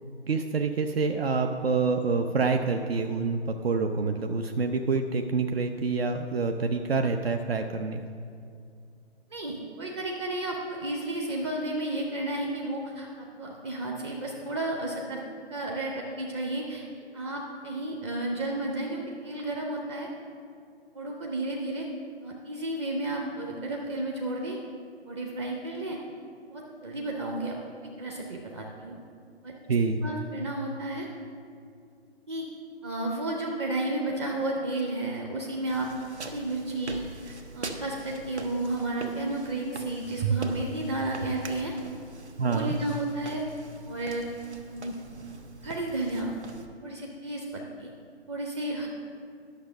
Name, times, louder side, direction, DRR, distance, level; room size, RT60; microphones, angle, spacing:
voice 1, 0.3-8.0 29.7-30.0 42.4-42.7, right 4 dB, 65° right, 5 dB, 0.7 m, -27 dB
voice 2, 9.3-15.2 15.5-16.8 17.1-20.1 20.9-21.9 22.2-24.6 25.1-26.0 26.5-27.6 28.0-29.0 29.4-29.5 30.0-31.1 32.3-32.5 32.8-35.9 36.3-41.7 42.4-43.5 43.9-44.3 44.7-45.0 45.6-46.3 46.8-47.9 48.3-48.9, right 2 dB, 25° right, -1 dB, 0.8 m, -32 dB
sound 1, 35.7-46.7, right 2 dB, 85° right, 1.3 m, -43 dB
11.5 x 6.4 x 6.3 m, 2.4 s
figure-of-eight pair, 145°, 33 cm